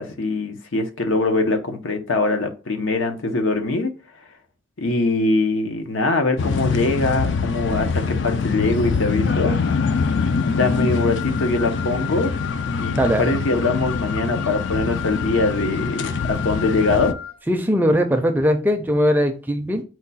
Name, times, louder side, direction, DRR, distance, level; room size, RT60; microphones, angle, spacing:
voice 1, 0.0-3.9 4.8-9.6 10.5-12.3 12.8-17.1, left 2 dB, 85° left, 5 dB, 0.8 m, -22 dB
sound 1, 6.4-17.1, left 5 dB, 70° left, 0.4 m, -24 dB
Wind instrument woodwind instrument, 9.6-17.4, left 11 dB, 50° left, 1.0 m, -35 dB
voice 2, 13.0-13.4 17.5-19.8, equal, 10° right, 6 dB, 0.4 m, -20 dB
4.5 x 2.3 x 4.0 m, 0.34 s
head